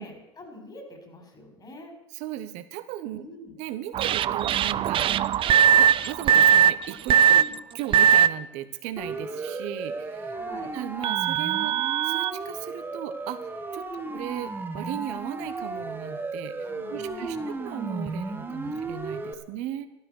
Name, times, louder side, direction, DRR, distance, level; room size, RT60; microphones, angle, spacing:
voice 1, 0.0-1.9 3.1-3.5 7.4-7.5 10.3-10.7 13.9-14.1 16.6-17.6 18.6-18.8, left 2 dB, 35° left, 5 dB, 5.0 m, -45 dB
voice 2, 2.1-3.2 3.6-5.3 5.8-7.4 7.7-10.4 10.7-11.7 12.0-19.9, right 12 dB, 75° right, 11 dB, 1.3 m, -37 dB
sound 1, 3.9-8.3 9.5-9.6 11.0-12.3, right 9 dB, 45° right, 0.5 m, -20 dB
Siren, 9.0-19.3, right 3 dB, 15° right, 1.9 m, -34 dB
13.0 x 12.5 x 6.6 m, 0.97 s
supercardioid pair, 80°, 12 cm